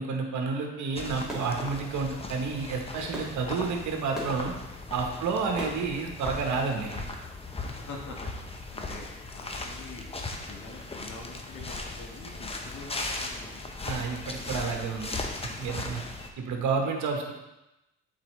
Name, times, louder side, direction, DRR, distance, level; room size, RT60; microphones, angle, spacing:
voice 1, 0.0-4.5 4.9-7.0 13.8-15.2 15.6-16.0 16.4-17.3, right 4 dB, 70° right, 2 dB, 1.1 m, -30 dB
Fireworks, 0.9-6.9, equal, ahead, 1.9 m, -44 dB
sound 1, 1.0-16.3, left 2 dB, 20° left, 0.7 m, -38 dB
voice 2, 7.6-10.1 10.5-13.6 15.4-15.7, left 3 dB, 70° left, 0 dB, 1.3 m, -45 dB
7.6 x 4.4 x 3.1 m, 0.96 s
cardioid pair, 90°, 30 cm